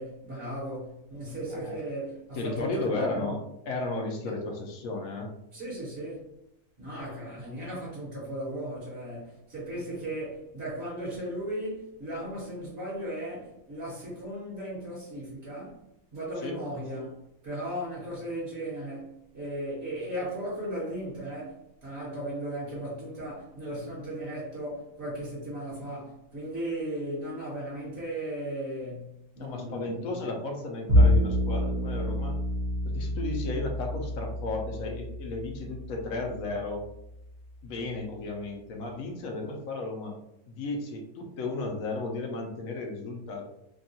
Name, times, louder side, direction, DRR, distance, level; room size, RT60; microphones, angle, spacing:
voice 1, 0.0-3.3 5.5-6.3 6.8-15.8 16.1-30.2, right 1 dB, 50° right, -8 dB, 1.4 m, -36 dB
voice 2, 2.3-3.4 3.7-5.3 16.4-16.6 29.4-32.3 32.8-36.8 37.6-40.2 40.5-43.5, left 2 dB, 75° left, 1 dB, 1.0 m, -34 dB
Bowed string instrument, 30.9-37.3, left 1 dB, 85° right, 1.5 m, -27 dB
3.5 x 2.3 x 2.6 m, 0.80 s
omnidirectional pair, 1.5 m